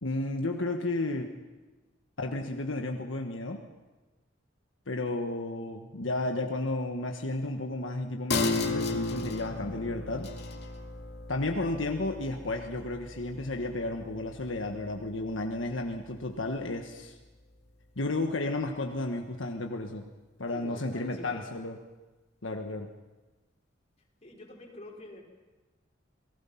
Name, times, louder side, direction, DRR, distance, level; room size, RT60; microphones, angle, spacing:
voice 1, 0.0-1.3 2.2-3.6 4.9-10.3 11.3-17.1 18.0-20.0 20.4-21.8 22.4-22.9, left 2 dB, 80° left, 3 dB, 1.5 m, -33 dB
sound 1, 8.3-15.3 15.7-15.8, left 3 dB, 60° left, 2.3 m, -34 dB
voice 2, 20.5-21.4 24.2-25.2, left 1 dB, 35° left, -1 dB, 4.9 m, -45 dB
28.0 x 19.0 x 5.8 m, 1.2 s
head